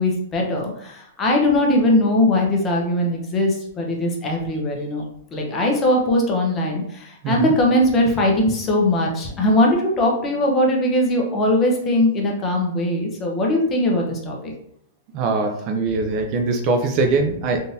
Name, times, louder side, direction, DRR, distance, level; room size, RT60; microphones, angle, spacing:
voice 1, 0.0-5.0 5.3-14.5, left 1 dB, 20° left, 0 dB, 0.7 m, -20 dB
voice 2, 7.2-7.6 15.1-17.6, right 3 dB, 35° right, 4 dB, 0.4 m, -22 dB
3.7 x 2.5 x 2.7 m, 0.71 s
hypercardioid pair, 145°, 0 cm